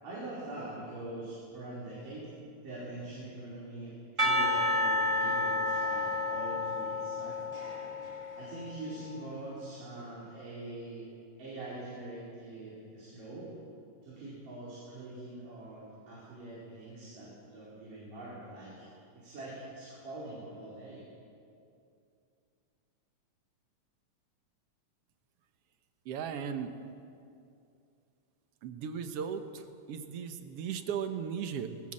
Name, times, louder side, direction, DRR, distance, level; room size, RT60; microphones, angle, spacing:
voice 1, 0.0-2.3 2.6-7.5 8.3-11.1 11.4-13.6 14.0-18.9 19.1-21.0, right 2 dB, 85° right, -8 dB, 6.2 m, -43 dB
Percussion / Church bell, 4.2-9.2, left 1 dB, 20° right, 0.8 m, -31 dB
voice 2, 26.1-26.8 28.6-29.6 29.9-31.8, right 7 dB, 60° right, 8 dB, 1.7 m, -36 dB
20.5 x 18.5 x 7.6 m, 2.5 s
omnidirectional pair, 3.7 m